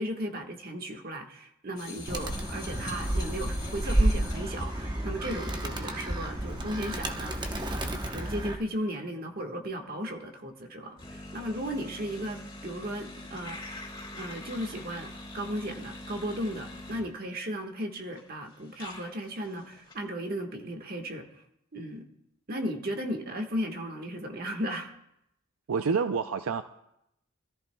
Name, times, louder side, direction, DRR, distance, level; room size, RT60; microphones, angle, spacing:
voice 1, 0.0-13.8 14.1-15.1 15.3-21.2 21.7-22.0 22.5-24.9, equal, 45° right, 1.5 m, -35 dB
sound 1, 1.8-8.5 11.0-17.2 17.8-17.9 18.1-20.0, left 2 dB, 20° left, 4.9 m, -45 dB
Animal, 2.1-8.6, right 1 dB, 20° right, 0.9 m, -30 dB
voice 2, 25.7-26.6, right 5 dB, 85° right, 0.5 m, -27 dB
24.5 x 14.0 x 2.3 m
head